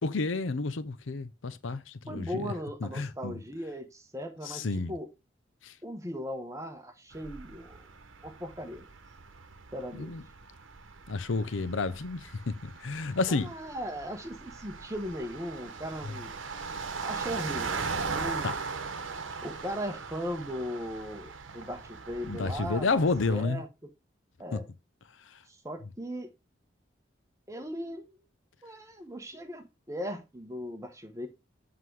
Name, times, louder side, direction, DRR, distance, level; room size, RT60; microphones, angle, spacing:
voice 1, 0.0-2.5 2.8-3.4 4.4-4.9 5.6-5.7 9.9-10.2 11.1-13.5 18.4-18.5 22.3-23.6 24.5-24.6 25.3-25.4, left 3 dB, 85° left, 0.7 m, -30 dB
voice 2, 2.1-5.1 5.8-7.9 8.2-8.9 9.7-10.1 13.3-16.3 17.0-18.5 19.4-22.9 23.3-23.7 24.4-24.7 25.5-26.3 27.5-28.2 28.6-31.3, equal, 15° right, 1.1 m, -38 dB
sound 1, 7.1-23.4, right 4 dB, 85° right, 1.0 m, -39 dB
7.7 x 3.8 x 4.7 m
head